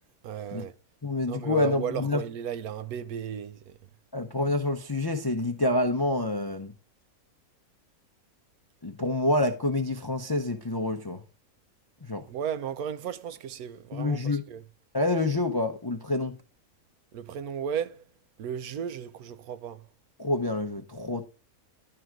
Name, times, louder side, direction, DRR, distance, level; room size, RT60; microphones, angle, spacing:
voice 1, 0.2-0.7 1.3-3.7 12.3-14.2 14.5-14.6 17.1-18.0 18.4-19.8, right 8 dB, 80° right, 1.2 m, -34 dB
voice 2, 1.0-2.2 4.1-6.7 8.8-11.2 12.0-12.2 13.9-14.4 14.9-16.4 20.2-21.2, left 2 dB, 30° left, 0.4 m, -27 dB
11.5 x 3.8 x 4.6 m
omnidirectional pair, 1.5 m